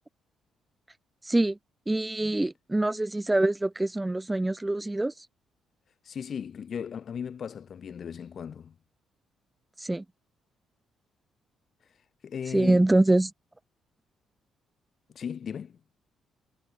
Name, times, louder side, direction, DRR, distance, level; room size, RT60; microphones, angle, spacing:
voice 1, 1.3-1.6 1.9-5.1 9.8-10.0 12.5-13.3, right 2 dB, 15° right, 0.6 m, -24 dB
voice 2, 6.0-8.7 11.8-12.8 15.1-15.8, left 7 dB, 55° left, 2.0 m, -37 dB
cardioid pair, 90°, 0 cm